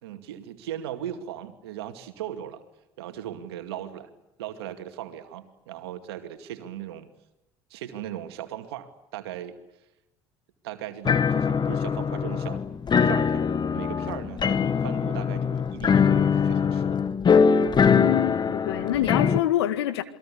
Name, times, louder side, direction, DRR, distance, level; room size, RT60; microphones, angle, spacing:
voice 1, 0.0-2.6 3.0-4.1 4.4-7.1 7.7-9.5 10.6-12.6 13.0-13.4 13.7-17.0, right 11 dB, 75° right, 2.4 m, -38 dB
sound 1, 11.0-19.4, left 6 dB, 35° left, 1.5 m, -22 dB
voice 2, 17.9-20.0, left 13 dB, 80° left, 1.9 m, -25 dB
28.0 x 21.5 x 8.5 m
hypercardioid pair, 60°, 13 cm